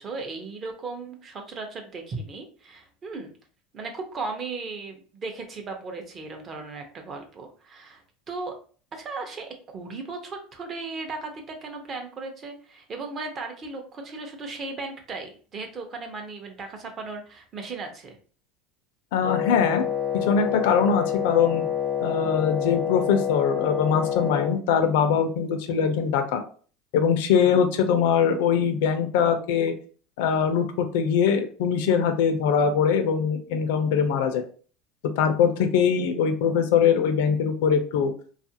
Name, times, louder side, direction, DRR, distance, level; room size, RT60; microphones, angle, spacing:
voice 1, 0.0-3.3 3.7-8.0 8.3-8.6 8.9-18.2, right 3 dB, 30° right, 4 dB, 0.6 m, -36 dB
voice 2, 19.1-19.8 20.1-21.6 22.0-26.4 26.9-29.7 30.2-34.4 35.2-38.1, left 7 dB, 80° left, 8 dB, 0.5 m, -22 dB
Wind instrument woodwind instrument, 19.2-24.6, left 9 dB, 15° left, 0.5 m, -27 dB
2.8 x 2.4 x 2.7 m, 0.41 s
supercardioid pair, 145°, 0 cm